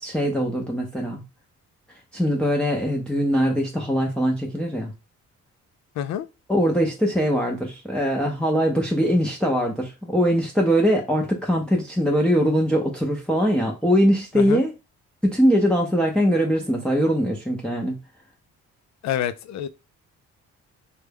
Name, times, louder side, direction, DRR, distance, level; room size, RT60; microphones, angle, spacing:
voice 1, 0.0-1.2 2.1-4.9 6.5-14.7 15.2-18.0, equal, 5° left, 0.6 m, -22 dB
voice 2, 6.0-6.3 14.3-14.6 19.0-19.7, left 10 dB, 65° left, 0.4 m, -27 dB
3.2 x 2.3 x 3.4 m
cardioid pair, 90°, 30 cm